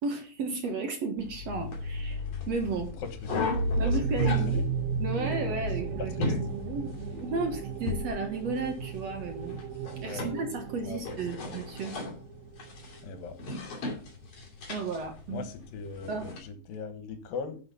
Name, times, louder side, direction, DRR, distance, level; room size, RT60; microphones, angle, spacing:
voice 1, 0.0-2.9 3.8-4.6 5.0-6.4 6.7-9.6 10.0-11.9 14.7-15.5 16.1-16.3, right 3 dB, 55° right, 4 dB, 2.0 m, -33 dB
sound 1, 1.2-16.4, left 4 dB, 45° left, 3.7 m, -38 dB
sound 2, 3.2-12.6, right 4 dB, 80° right, 2.8 m, -33 dB
voice 2, 3.3-4.1 4.5-4.6 6.2-6.3 10.0-10.3 10.9-11.0 11.4-11.5 13.0-13.4 15.3-17.6, left 5 dB, 75° left, 9 dB, 3.1 m, -39 dB
10.5 x 6.0 x 5.6 m, 0.37 s
omnidirectional pair, 4.1 m